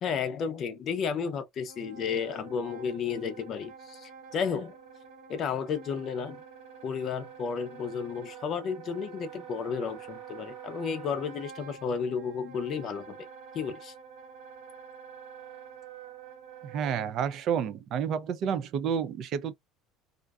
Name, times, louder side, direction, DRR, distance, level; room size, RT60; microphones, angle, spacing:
voice 1, 0.0-4.7 5.3-6.4 6.8-13.2 13.5-13.9, left 6 dB, 35° left, 0.5 m, -32 dB
Wind instrument woodwind instrument, 1.6-17.1, right 7 dB, 75° right, 1.3 m, -47 dB
voice 2, 16.6-19.5, right 8 dB, 40° right, 0.3 m, -30 dB
2.5 x 2.3 x 2.3 m
cardioid pair, 175°, 0 cm